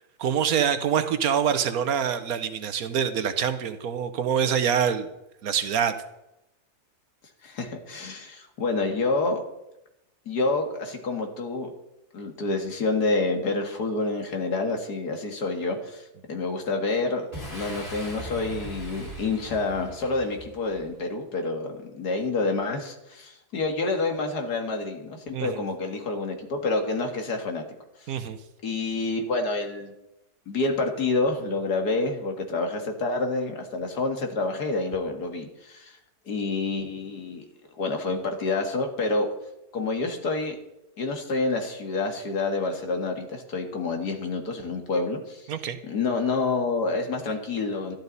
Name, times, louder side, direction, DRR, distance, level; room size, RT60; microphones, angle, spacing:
voice 1, 0.2-5.1 5.4-6.0 25.3-25.6 28.1-28.4 45.5-45.8, right 8 dB, 70° right, 10 dB, 1.3 m, -25 dB
voice 2, 7.4-9.4 10.3-11.7 12.1-17.3 17.5-27.6 28.0-28.1 28.6-29.9 30.5-36.0 36.3-37.4 37.8-39.3 39.7-40.6 41.0-45.5 45.8-47.9, left 3 dB, 80° left, 4 dB, 2.3 m, -28 dB
Boom, 17.3-20.9, equal, 30° left, 3.2 m, -39 dB
13.0 x 12.0 x 4.1 m, 0.89 s
omnidirectional pair, 1.7 m